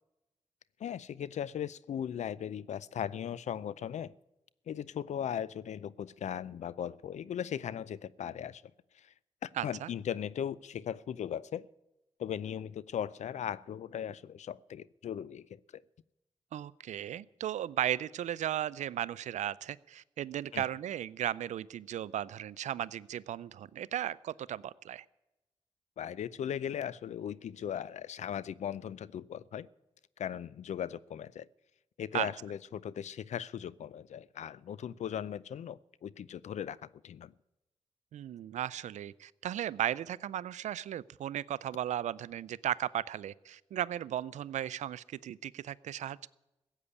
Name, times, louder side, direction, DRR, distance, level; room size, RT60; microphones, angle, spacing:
voice 1, 0.8-4.1 4.7-8.6 8.9-9.1 9.4-11.7 12.2-15.8 20.5-20.6 26.0-29.7 30.2-31.5 32.0-37.3, left 9 dB, 75° left, 0.5 m, -38 dB
voice 2, 9.6-9.9 16.5-25.0 32.1-32.3 38.1-46.3, right 11 dB, 90° right, 0.5 m, -36 dB
15.5 x 8.3 x 9.8 m
cardioid pair, 60°, 12 cm